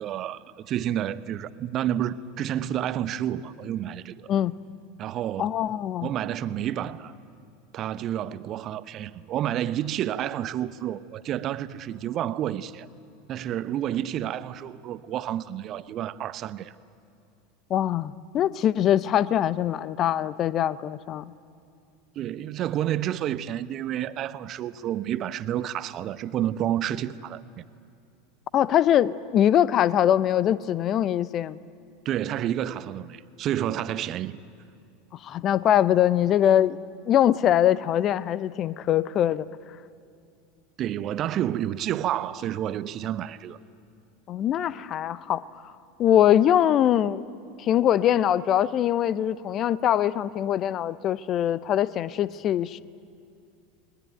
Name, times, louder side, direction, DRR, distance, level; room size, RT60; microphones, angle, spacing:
voice 1, 0.0-4.3 5.0-5.6 6.0-7.1 7.7-12.9 13.3-16.7 22.1-27.6 32.0-34.4 40.8-43.6, right 11 dB, 40° right, 0.9 m, -30 dB
voice 2, 5.4-6.1 17.7-21.3 28.5-31.6 35.2-36.8 37.1-39.5 44.3-45.7 46.0-47.2 47.6-52.8, left 11 dB, 40° left, 0.8 m, -23 dB
30.0 x 21.5 x 9.2 m
figure-of-eight pair, 80°, 0 cm